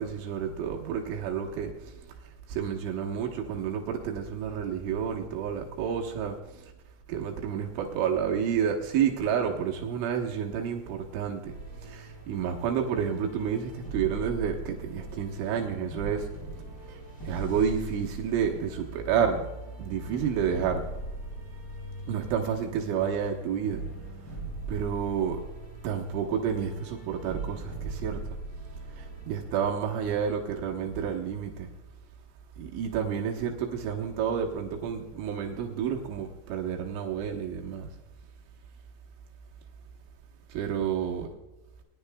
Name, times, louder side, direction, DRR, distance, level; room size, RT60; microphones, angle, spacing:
voice 1, 0.0-2.0 2.5-6.7 7.1-11.5 11.8-16.3 16.9-19.5 19.8-20.8 22.1-23.8 24.7-25.4 25.8-28.2 28.9-31.7 32.6-37.9 40.5-41.3, right 7 dB, 80° right, 1 dB, 3.4 m, -30 dB
sound 1, 11.4-29.7, right 2 dB, 10° left, 2.2 m, -40 dB
21.0 x 11.0 x 2.3 m, 1.1 s
omnidirectional pair, 5.6 m